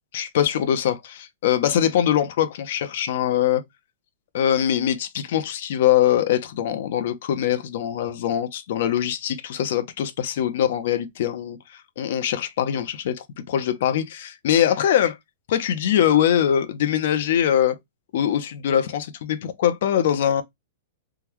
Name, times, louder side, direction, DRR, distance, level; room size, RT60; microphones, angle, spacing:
voice 1, 0.1-3.6 4.3-11.6 12.0-15.2 15.5-17.8 18.1-20.4, left 10 dB, 55° left, 0.6 m, -22 dB
3.6 x 2.2 x 2.9 m
supercardioid pair, 170°, 0 cm